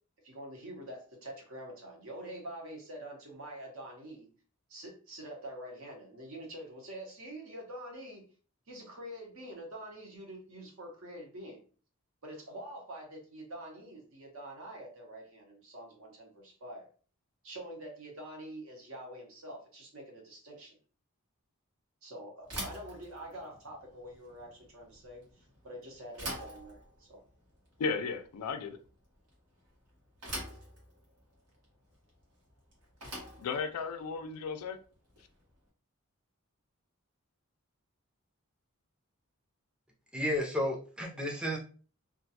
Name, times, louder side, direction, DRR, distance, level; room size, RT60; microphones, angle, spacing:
voice 1, 0.2-4.3 4.7-8.2 8.7-11.6 12.2-16.9 17.4-20.8 22.0-27.2, right 1 dB, 65° right, 0.8 m, -46 dB
Bicycle / Thump thud, 22.4-35.5, right 1 dB, 90° right, 1.1 m, -46 dB
voice 2, 27.8-28.8 33.4-34.8, left 5 dB, 85° left, 0.4 m, -34 dB
voice 3, 40.1-41.6, left 1 dB, 5° right, 0.4 m, -32 dB
2.3 x 2.2 x 2.7 m
head